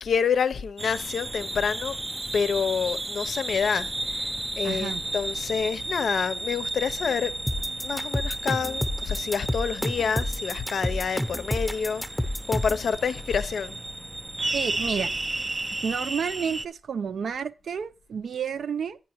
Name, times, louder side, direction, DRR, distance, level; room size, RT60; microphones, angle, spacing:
voice 1, 0.0-2.0 2.3-4.3 4.6-7.3 7.8-12.0 12.5-13.8, left 6 dB, 60° left, 0.6 m, -27 dB
sound 1, 0.8-16.7, right 2 dB, 20° right, 0.4 m, -33 dB
voice 2, 4.6-5.0 14.5-15.1 15.8-19.0, right 7 dB, 65° right, 0.6 m, -30 dB
sound 2, 7.5-12.8, left 1 dB, 5° left, 0.8 m, -29 dB
10.5 x 10.0 x 3.0 m
wide cardioid pair, 150°, 0 cm